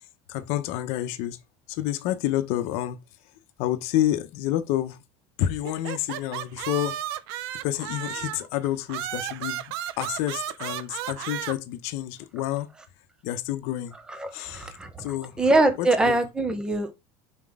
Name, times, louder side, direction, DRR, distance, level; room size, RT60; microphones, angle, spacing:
voice 1, 0.3-1.4 1.7-3.0 3.6-5.0 5.4-7.0 7.6-12.7 13.2-13.9 14.3-14.7 15.0-15.4 15.8-16.2, left 13 dB, 55° left, 0.8 m, -29 dB
sound 1, 5.6-8.5 8.9-11.5, right 12 dB, 85° right, 0.6 m, -33 dB
voice 2, 14.1-16.9, right 2 dB, 5° right, 0.8 m, -24 dB
5.9 x 4.4 x 3.6 m
cardioid pair, 175°, 13 cm